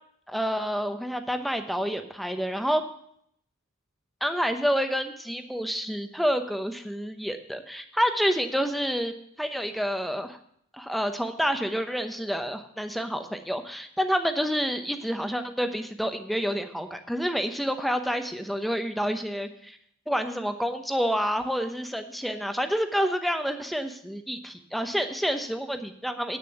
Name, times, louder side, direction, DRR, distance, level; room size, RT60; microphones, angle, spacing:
voice 1, 0.3-2.8 4.2-9.1 9.4-10.4 10.7-19.8 20.1-26.4, equal, ahead, 7 dB, 0.8 m, -28 dB
9.1 x 7.0 x 7.8 m, 0.68 s
head